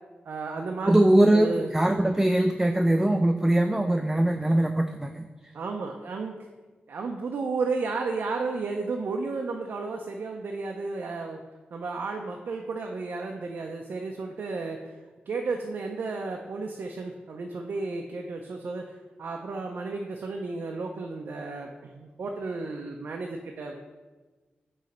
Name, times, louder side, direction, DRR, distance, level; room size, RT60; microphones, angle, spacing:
voice 1, 0.3-1.7 5.5-6.4 6.9-11.4 11.7-14.8 15.3-18.9 19.2-24.0, right 3 dB, 70° right, 2 dB, 0.5 m, -33 dB
voice 2, 0.9-5.2, right 1 dB, 10° right, 6 dB, 0.3 m, -22 dB
7.6 x 3.1 x 4.2 m, 1.3 s
wide cardioid pair, 85°, 3 cm